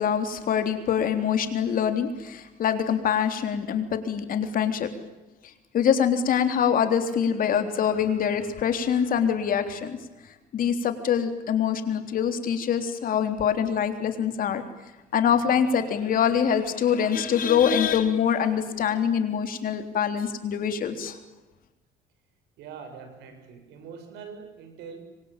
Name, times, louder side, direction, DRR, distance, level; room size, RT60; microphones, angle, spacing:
voice 1, 0.0-4.9 5.7-10.0 10.5-14.6 15.1-21.2, left 8 dB, 55° left, 7 dB, 3.7 m, -24 dB
voice 2, 22.6-25.0, right 6 dB, 90° right, 7 dB, 7.0 m, -43 dB
27.0 x 24.0 x 9.1 m, 1.1 s
cardioid pair, 110°, 17 cm